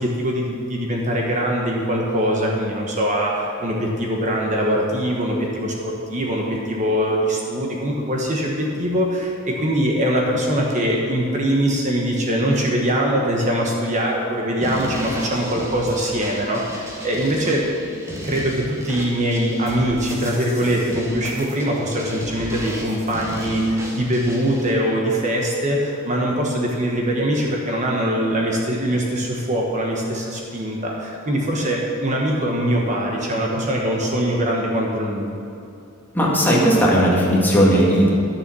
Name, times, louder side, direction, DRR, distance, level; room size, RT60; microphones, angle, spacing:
voice 1, 0.0-35.3, equal, 35° right, -1 dB, 1.2 m, -22 dB
sound 1, 14.6-24.7, equal, 15° right, 1.5 m, -34 dB
voice 2, 36.1-38.1, equal, 10° left, -5 dB, 1.9 m, -16 dB
11.0 x 7.1 x 6.2 m, 2.6 s
head